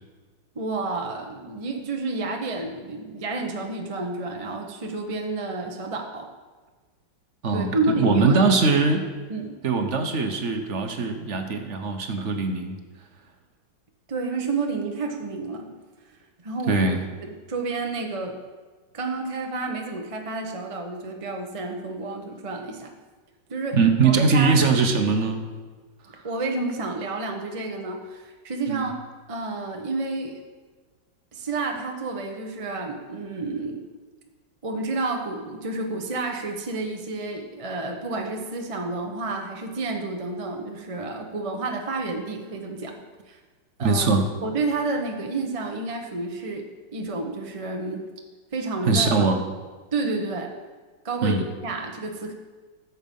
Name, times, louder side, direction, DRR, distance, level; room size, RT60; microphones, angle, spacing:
voice 1, 0.5-6.3 7.5-8.5 9.3-9.6 14.1-15.7 16.4-16.9 17.2-18.3 18.9-22.9 23.5-24.6 26.2-28.9 29.3-30.4 31.3-33.8 34.6-42.9 43.3-43.4 43.8-48.1 48.5-49.1 49.9-50.5 51.0-52.3, right 3 dB, 25° right, 2 dB, 0.7 m, -30 dB
voice 2, 7.4-9.1 9.6-12.8 16.7-17.0 23.7-25.5 28.7-28.8 43.8-44.3 48.8-49.4 51.2-51.4, right 4 dB, 45° right, 5 dB, 1.1 m, -21 dB
14.0 x 7.5 x 5.4 m, 1.4 s
omnidirectional pair, 2.2 m